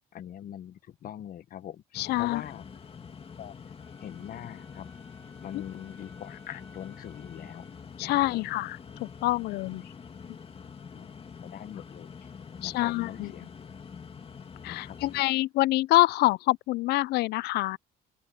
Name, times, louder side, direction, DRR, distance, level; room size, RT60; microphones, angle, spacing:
voice 1, 0.1-2.6 3.4-3.6 4.0-4.9 5.4-7.7 8.0-8.4 10.9-11.1 11.4-12.1 12.6-13.5 14.6-15.1, left 10 dB, 60° left, 1.3 m, -43 dB
sound 1, 1.9-15.2, left 6 dB, 35° left, 2.6 m, -46 dB
voice 2, 2.0-2.4 8.0-9.8 12.6-13.3 14.6-17.8, left 18 dB, 75° left, 0.4 m, -26 dB
Wind instrument woodwind instrument, 3.8-7.9, left 1 dB, 5° left, 6.0 m, -59 dB
open air
cardioid pair, 110°, 17 cm